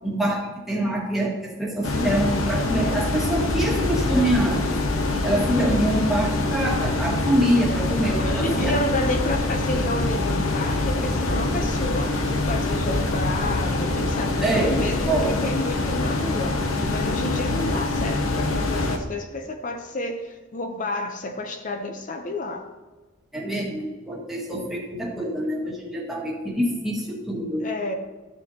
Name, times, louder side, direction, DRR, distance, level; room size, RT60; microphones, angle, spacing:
voice 1, 0.0-4.8 5.2-8.8 14.4-15.4 23.3-27.7, right 1 dB, ahead, -4 dB, 1.7 m, -25 dB
sound 1, 1.8-19.0, left 2 dB, 90° left, 1.0 m, -24 dB
voice 2, 8.2-22.7 27.6-27.9, left 1 dB, 40° left, 6 dB, 0.7 m, -30 dB
13.0 x 6.9 x 2.9 m, 1.3 s
head